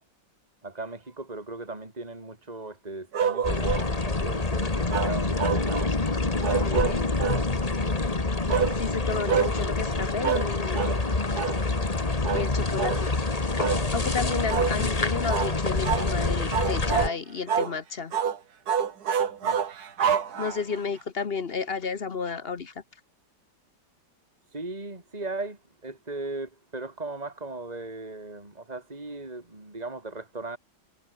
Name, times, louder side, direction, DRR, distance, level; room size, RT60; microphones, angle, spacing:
voice 1, 0.6-5.5 19.4-19.6 24.5-30.6, right 2 dB, 20° right, 3.9 m, -37 dB
sound 1, 3.1-3.9 4.9-5.9 6.4-7.5 8.5-8.8 9.3-9.5 10.2-10.5 10.7-11.0 11.3-11.6 12.2-12.5 12.8-13.0 13.6-13.8 14.5-14.7 15.3-15.5 15.8-16.1 16.5-17.1 17.5-17.7 18.1-18.4 18.7-20.8, right 7 dB, 55° right, 1.9 m, -27 dB
sound 2, 3.4-17.1, left 3 dB, 20° left, 1.7 m, -27 dB
voice 2, 6.5-7.2 8.7-10.8 12.3-13.1 13.9-18.1 20.1-22.8, left 5 dB, 40° left, 1.1 m, -32 dB
omnidirectional pair, 2.0 m